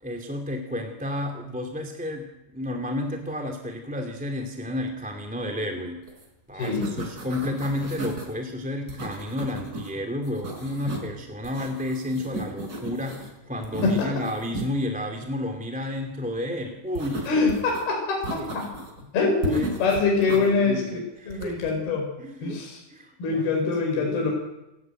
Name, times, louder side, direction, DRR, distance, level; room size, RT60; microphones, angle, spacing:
voice 1, 0.0-6.0 6.5-17.3 18.3-18.4 19.2-20.0 20.5-21.6 22.2-22.6 22.9-23.6 23.9-24.3, left 1 dB, 5° right, 2 dB, 1.8 m, -32 dB
sound 1, 6.1-6.2 6.5-8.3 8.9-9.9 10.2-11.1 11.4-13.3 13.6-14.7 16.9-17.8 18.2-19.0 19.4-20.5 21.3-21.7, right 2 dB, 20° right, 5.2 m, -35 dB
voice 2, 6.5-6.9 13.8-14.1 17.3-18.6 19.1-21.0 21.3-22.1 22.4-22.8 23.2-24.3, left 4 dB, 70° left, 0 dB, 6.8 m, -24 dB
29.5 x 14.5 x 9.2 m, 0.97 s
omnidirectional pair, 4.7 m